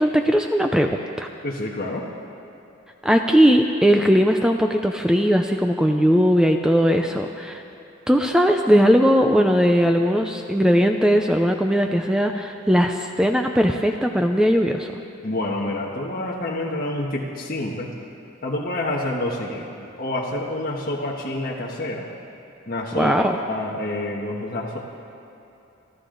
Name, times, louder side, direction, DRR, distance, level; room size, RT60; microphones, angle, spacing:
voice 1, 0.0-1.3 3.0-7.6 8.1-14.9 22.9-23.4, equal, 5° right, 4 dB, 0.5 m, -19 dB
voice 2, 1.4-2.1 15.2-17.9 18.4-19.7 20.0-22.1 22.7-23.2 23.5-24.8, left 1 dB, 45° left, -4 dB, 1.4 m, -28 dB
28.5 x 12.0 x 3.9 m, 2.9 s
head